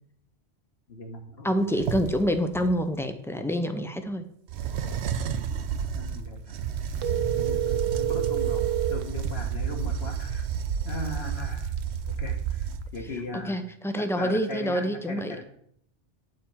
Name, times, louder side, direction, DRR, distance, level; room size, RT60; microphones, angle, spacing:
voice 1, 0.9-1.5 6.0-8.6 8.9-10.5 10.8-11.7 12.2-13.6 14.0-15.4, left 2 dB, 60° left, 2 dB, 1.8 m, -39 dB
voice 2, 1.4-4.2 13.3-15.4, equal, 5° left, 8 dB, 0.4 m, -27 dB
sound 1, 1.6-2.8 4.5-13.1, right 7 dB, 70° right, 0.9 m, -31 dB
phone-ring, 7.0-9.1, right 11 dB, 85° right, 1.0 m, -28 dB
9.3 x 4.4 x 7.1 m, 0.67 s
omnidirectional pair, 1.2 m